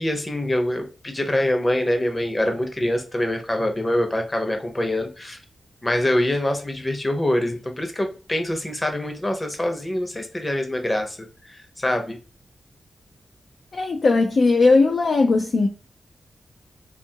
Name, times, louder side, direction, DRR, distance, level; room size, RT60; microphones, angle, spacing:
voice 1, 0.0-5.4 5.8-12.2, left 1 dB, 20° left, 0.7 m, -25 dB
voice 2, 13.7-15.7, left 3 dB, 55° left, 0.4 m, -18 dB
2.6 x 2.4 x 2.7 m
wide cardioid pair, 90°, 0 cm